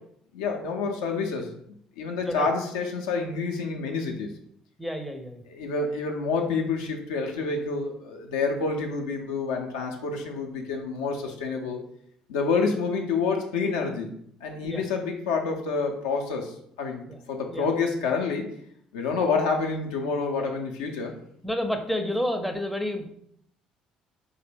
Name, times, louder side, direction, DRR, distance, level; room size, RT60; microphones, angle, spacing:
voice 1, 0.3-1.6 2.0-4.3 5.5-11.8 12.3-14.1 14.4-18.5 18.9-21.1, left 4 dB, 75° left, 2 dB, 0.4 m, -28 dB
voice 2, 4.8-5.4 14.6-14.8 17.1-17.2 17.5-17.7 21.4-23.1, left 1 dB, ahead, 5 dB, 0.4 m, -30 dB
2.6 x 2.0 x 3.3 m, 0.67 s
figure-of-eight pair, 50°, 3 cm